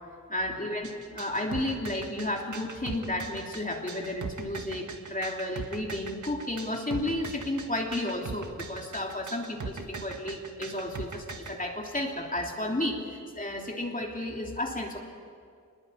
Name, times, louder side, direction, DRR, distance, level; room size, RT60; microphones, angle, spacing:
voice 1, 0.3-15.0, left 1 dB, 25° left, 0 dB, 3.2 m, -32 dB
sound 1, 0.8-11.5, right 4 dB, 75° right, 1.9 m, -39 dB
26.0 x 21.0 x 8.6 m, 2.2 s
wide cardioid pair, 95°, 30 cm